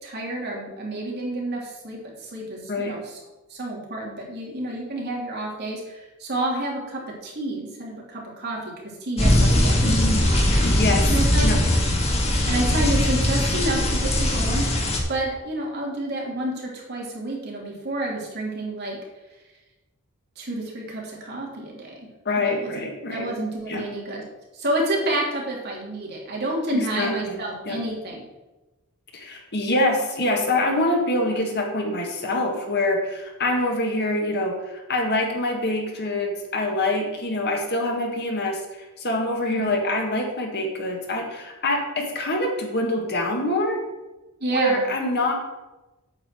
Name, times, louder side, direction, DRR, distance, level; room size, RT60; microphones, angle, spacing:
voice 1, 0.0-3.2 3.5-8.7 9.0-10.6 11.1-11.5 12.4-14.8 15.1-19.0 20.4-21.9 22.4-22.7 23.1-24.2 24.5-28.2 39.5-39.7 44.4-44.8, right 1 dB, 50° right, -3 dB, 3.2 m, -29 dB
sound 1, 9.2-15.0, left 1 dB, 30° left, 1.7 m, -20 dB
voice 2, 9.9-10.3 10.6-11.1 11.4-11.6 22.3-23.3 23.7-23.9 26.7-27.8 29.1-38.6 39.0-43.8 44.5-45.3, left 1 dB, 50° left, 2 dB, 1.8 m, -25 dB
8.9 x 5.6 x 7.7 m, 1.1 s
head